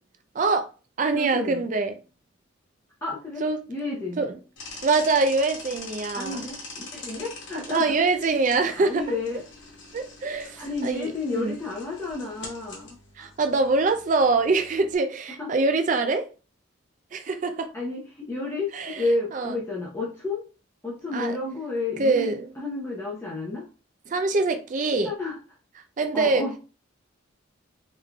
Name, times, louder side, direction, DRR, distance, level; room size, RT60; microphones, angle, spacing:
voice 1, 0.3-0.7 1.0-2.0 3.4-3.6 4.2-4.3 4.8-6.4 7.5-9.2 9.9-11.6 13.2-16.3 17.1-17.7 18.7-19.0 19.3-19.5 21.1-21.3 22.0-22.5 24.1-25.1 26.0-26.4, right 3 dB, 40° right, 0.4 m, -24 dB
voice 2, 1.1-1.6 3.0-3.4 3.7-4.2 6.1-7.9 8.5-9.4 10.6-13.3 15.4-15.5 17.7-20.4 20.8-23.7 25.0-25.4 26.1-26.6, left 2 dB, 10° left, 0.6 m, -31 dB
sound 1, 4.6-15.0, left 3 dB, 60° left, 1.1 m, -43 dB
3.6 x 3.1 x 2.2 m
head